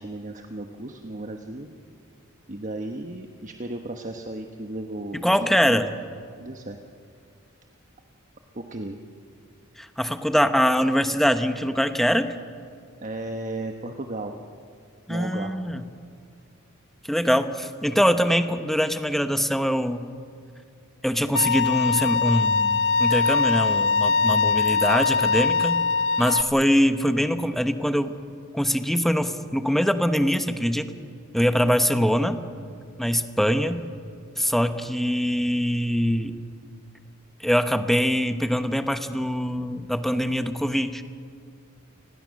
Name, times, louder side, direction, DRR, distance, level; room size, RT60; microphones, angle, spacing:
voice 1, 0.0-1.7 2.5-5.8 6.4-6.8 8.5-9.0 13.0-14.4 15.1-15.7, right 2 dB, 40° right, 4 dB, 1.1 m, -35 dB
voice 2, 5.2-5.9 9.8-12.3 15.1-15.8 17.1-20.1 21.0-25.8 26.2-28.2 28.5-30.9 31.3-32.4 33.0-33.8 34.4-36.4 37.4-41.0, equal, ahead, 9 dB, 1.0 m, -23 dB
Bowed string instrument, 21.3-26.4, left 4 dB, 60° left, 0.9 m, -22 dB
29.0 x 20.5 x 6.5 m, 2.4 s
head